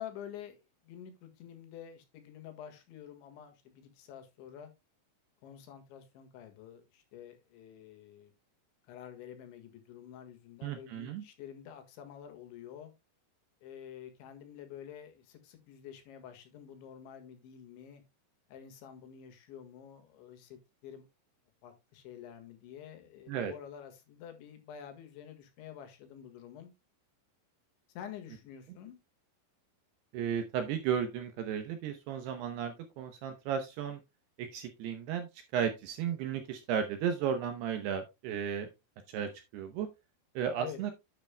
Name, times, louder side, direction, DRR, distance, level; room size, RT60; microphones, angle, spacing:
voice 1, 0.0-4.7 5.4-8.3 8.9-12.9 13.6-18.0 18.5-21.1 21.6-26.7 28.0-29.0 40.6-40.8, left 9 dB, 75° left, 3.8 m, -48 dB
voice 2, 10.6-11.2 23.3-23.5 30.1-34.0 34.4-38.7 39.1-39.9 40.4-40.9, right 8 dB, 75° right, 2.5 m, -34 dB
10.0 x 8.9 x 2.2 m
omnidirectional pair, 5.6 m